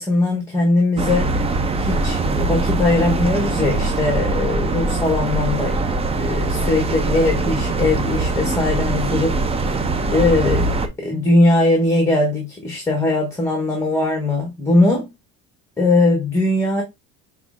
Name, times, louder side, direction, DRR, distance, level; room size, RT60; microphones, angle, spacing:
voice 1, 0.0-1.4 1.8-5.8 6.1-9.4 10.1-15.1 15.8-16.8, left 2 dB, 10° left, 1.0 m, -20 dB
sound 1, 1.0-10.9, right 2 dB, 15° right, 0.4 m, -22 dB
5.8 x 3.2 x 2.4 m
cardioid pair, 140°, 36 cm